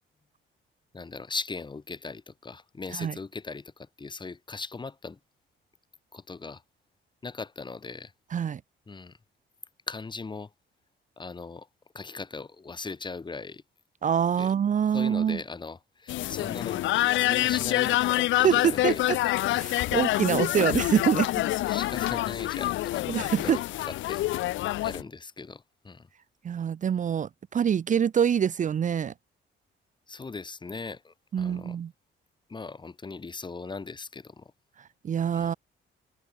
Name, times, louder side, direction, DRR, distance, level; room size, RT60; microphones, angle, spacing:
voice 1, 0.9-5.2 6.1-6.6 7.2-8.1 8.9-9.2 9.9-10.5 11.2-11.7 11.9-13.6 14.4-14.5 14.9-19.6 21.4-24.3 24.8-26.1 30.1-31.8 32.5-34.5 35.3-35.5, left 4 dB, 20° left, 3.4 m, -39 dB
voice 2, 14.0-15.4 18.4-19.2 19.6-21.3 23.1-23.6 24.7-24.8 26.4-29.1 31.3-31.9 34.8-35.5, right 8 dB, 40° right, 0.7 m, -25 dB
sound 1, 16.1-25.0, left 16 dB, 70° left, 0.4 m, -26 dB
cardioid pair, 135°, 20 cm